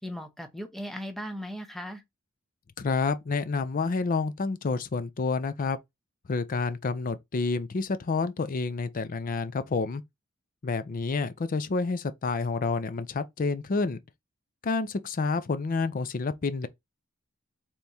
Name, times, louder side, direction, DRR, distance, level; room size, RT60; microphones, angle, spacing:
voice 1, 0.0-2.0, equal, ahead, 0.7 m, -37 dB
voice 2, 2.8-5.8 6.3-10.0 10.6-14.0 14.6-16.7, left 4 dB, 40° left, 0.4 m, -29 dB
3.5 x 3.0 x 4.1 m
head